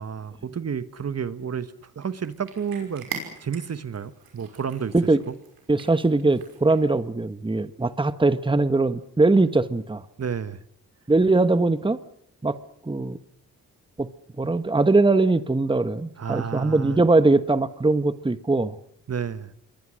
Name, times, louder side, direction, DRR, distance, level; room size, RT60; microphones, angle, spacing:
voice 1, 0.0-4.9 5.3-5.4 10.2-10.6 16.2-17.0 19.1-19.5, right 7 dB, 45° right, 13 dB, 1.4 m, -31 dB
Cat, 1.8-7.0, right 6 dB, 85° right, 5.8 m, -42 dB
voice 2, 5.7-10.0 11.1-12.0 12.4-12.6 12.9-13.2 14.0-14.1 14.4-18.7, right 2 dB, 15° right, 12 dB, 1.2 m, -21 dB
27.5 x 22.5 x 6.4 m, 0.68 s
cardioid pair, 65°, 35 cm